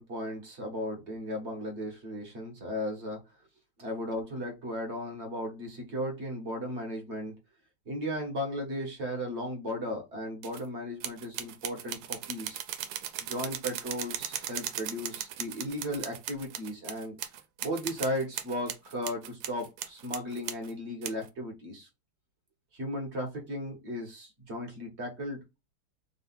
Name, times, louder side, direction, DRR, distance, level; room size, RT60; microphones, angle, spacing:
voice 1, 0.0-3.2 3.8-7.3 7.9-12.6 13.2-17.1 17.6-21.9 22.7-25.4, equal, 35° right, 1 dB, 1.5 m, -36 dB
sound 1, 10.4-10.6 11.0-20.7 21.0-21.3, right 11 dB, 90° right, 1.5 m, -37 dB
4.0 x 2.7 x 4.1 m, 0.24 s
omnidirectional pair, 2.3 m